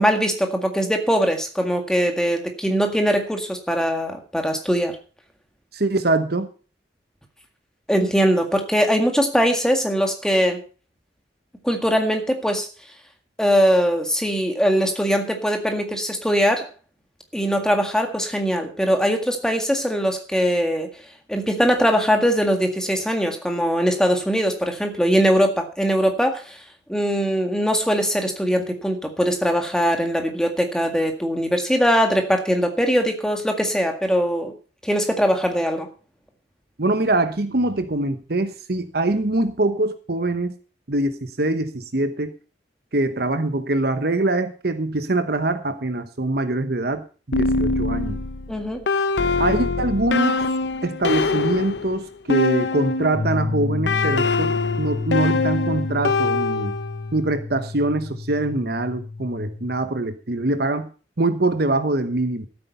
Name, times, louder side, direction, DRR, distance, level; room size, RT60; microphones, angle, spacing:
voice 1, 0.0-5.0 7.9-10.6 11.6-12.7 13.4-16.7 17.3-20.9 21.3-26.6 26.9-34.5 34.8-35.9 48.5-48.8, equal, 5° left, 4 dB, 1.9 m, -21 dB
voice 2, 5.7-6.5 36.8-40.5 40.9-42.3 42.9-48.2 49.4-50.4 50.8-56.8 57.1-60.9 61.2-62.5, right 2 dB, 55° right, 10 dB, 1.1 m, -23 dB
sound 1, 47.3-53.3 53.9-57.1, left 3 dB, 65° left, 0.8 m, -23 dB
sound 2, 53.1-59.8, left 3 dB, 30° left, 6.4 m, -30 dB
14.0 x 8.7 x 5.5 m, 0.37 s
head